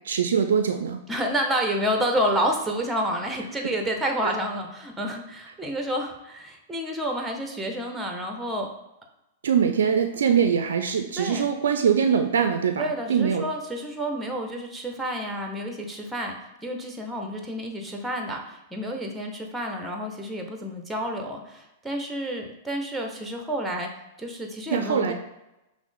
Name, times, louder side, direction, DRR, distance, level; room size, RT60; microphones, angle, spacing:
voice 1, 0.0-1.0 3.6-3.7 9.4-13.4 24.7-25.1, right 7 dB, 70° right, 6 dB, 0.3 m, -23 dB
voice 2, 1.1-8.7 11.2-11.5 12.8-16.4 16.6-23.9 24.2-25.1, equal, 5° right, 3 dB, 0.8 m, -29 dB
5.9 x 2.0 x 3.7 m, 0.91 s
figure-of-eight pair, 100°, 0 cm